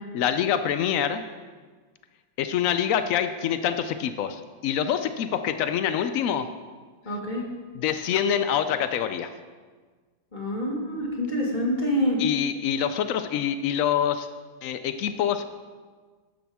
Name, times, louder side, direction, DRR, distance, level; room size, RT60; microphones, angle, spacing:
voice 1, 0.1-1.2 2.4-6.5 7.7-9.3 12.2-14.3 14.6-15.4, left 9 dB, 85° left, 10 dB, 0.7 m, -25 dB
voice 2, 7.1-7.4 10.3-12.2, equal, 25° left, -2 dB, 2.0 m, -26 dB
13.0 x 10.0 x 3.6 m, 1.5 s
omnidirectional pair, 2.0 m